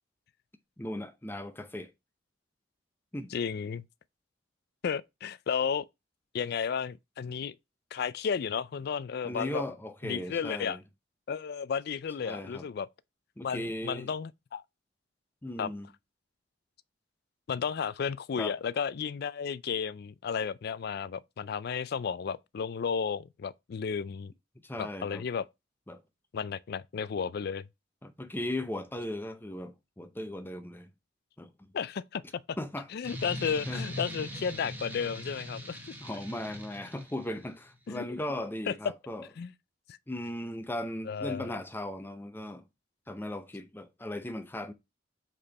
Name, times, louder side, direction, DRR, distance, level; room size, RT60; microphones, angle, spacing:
voice 1, 0.8-1.9 3.1-3.3 9.2-10.8 12.2-12.7 13.4-14.1 15.4-15.9 18.4-18.5 24.6-25.2 25.9-26.0 28.0-30.9 31.4-31.7 32.6-32.9 33.7-33.9 36.0-39.3 40.1-42.6 43.1-44.7, left 1 dB, 10° left, 0.7 m, -37 dB
voice 2, 3.3-3.8 4.8-5.8 6.3-7.6 7.9-9.6 10.0-10.8 11.3-12.9 13.4-14.6 15.6-15.7 17.5-24.3 24.8-25.4 26.3-27.7 31.7-32.6 32.9-35.8 37.9-38.1 38.7-38.8 39.4-39.5 39.9-40.0 41.0-41.5, left 6 dB, 55° left, 0.4 m, -33 dB
sound 1, 33.0-37.5, left 1 dB, 10° right, 1.2 m, -41 dB
5.2 x 4.4 x 4.1 m
head